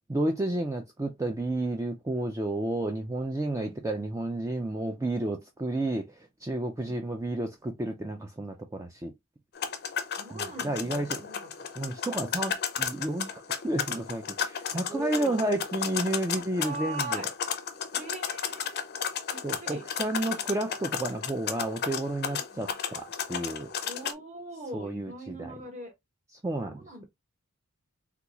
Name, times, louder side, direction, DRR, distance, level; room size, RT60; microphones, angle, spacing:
voice 1, 0.1-9.1 10.3-11.2 11.8-17.3 19.4-23.7 24.7-25.6 26.4-26.9, right 1 dB, 15° right, 0.3 m, -31 dB
sound 1, 9.6-24.1, left 7 dB, 45° left, 0.5 m, -34 dB
voice 2, 10.2-11.5 14.9-15.4 16.3-17.3 17.9-18.8 19.3-19.9 22.3-22.7 23.8-25.9 26.6-27.1, right 1 dB, 30° right, 1.2 m, -41 dB
3.7 x 2.3 x 2.9 m
head